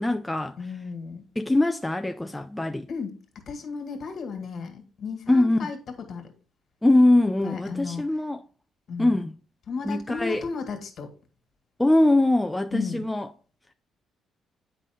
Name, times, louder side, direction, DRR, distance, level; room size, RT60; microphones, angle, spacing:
voice 1, 0.0-0.6 1.4-2.9 5.3-5.6 6.8-8.4 9.0-9.3 9.9-10.4 11.8-13.3, left 1 dB, 10° left, 0.4 m, -22 dB
voice 2, 0.6-1.2 2.9-6.3 7.4-8.0 8.9-9.2 9.7-11.1 12.7-13.0, left 5 dB, 55° left, 2.0 m, -34 dB
8.3 x 5.4 x 3.6 m
cardioid pair, 105°, 0 cm